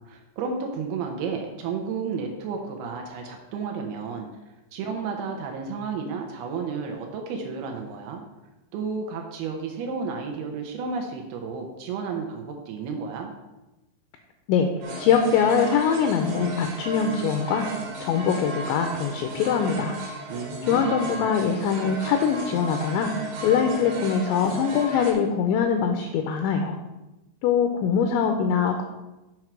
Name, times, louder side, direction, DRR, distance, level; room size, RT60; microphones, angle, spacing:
voice 1, 0.0-4.3 4.7-8.2 8.7-13.3 20.3-21.2, right 5 dB, 85° right, 2 dB, 2.2 m, -32 dB
sound 1, 14.8-25.1, right 2 dB, 65° right, 3.1 m, -35 dB
voice 2, 15.0-17.7 18.0-20.0 20.7-26.8 27.4-28.8, left 6 dB, 80° left, 5 dB, 2.8 m, -23 dB
7.9 x 4.6 x 5.9 m, 1.0 s
omnidirectional pair, 5.7 m